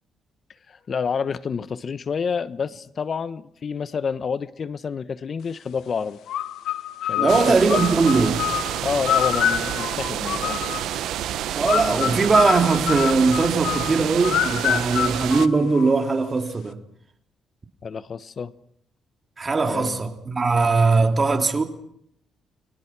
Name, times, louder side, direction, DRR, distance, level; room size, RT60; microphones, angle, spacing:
voice 1, 0.7-6.2 7.1-7.9 8.8-10.6 11.9-12.2 17.8-18.5 19.6-20.0, left 6 dB, 45° left, 1.1 m, -29 dB
sound 1, 6.3-11.0 11.7-16.1, left 11 dB, 75° left, 1.5 m, -27 dB
voice 2, 7.2-8.4 11.5-16.8 19.4-21.6, right 4 dB, 30° right, 3.4 m, -20 dB
sound 2, 7.3-15.5, right 12 dB, 80° right, 1.1 m, -28 dB
30.0 x 22.5 x 6.1 m
cardioid pair, 90°, 0 cm